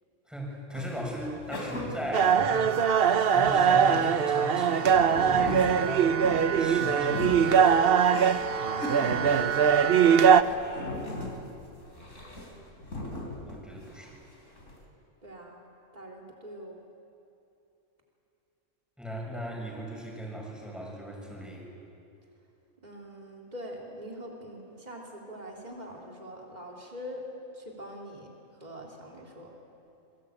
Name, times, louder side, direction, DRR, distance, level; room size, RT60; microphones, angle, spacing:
voice 1, 0.3-2.9 3.3-6.2 6.6-7.7 13.4-14.2 19.0-21.7, equal, ahead, -1 dB, 5.9 m, -37 dB
sound 1, 0.7-4.0 4.5-14.1 14.5-14.8, left 1 dB, 90° left, 3.9 m, -39 dB
sound 2, 2.1-10.4, right 7 dB, 55° right, 1.0 m, -22 dB
voice 2, 9.1-11.4 15.2-15.7 15.9-16.8 22.8-27.3 27.5-29.6, equal, 35° right, -1 dB, 3.5 m, -43 dB
27.5 x 23.0 x 8.8 m, 2.7 s
omnidirectional pair, 1.3 m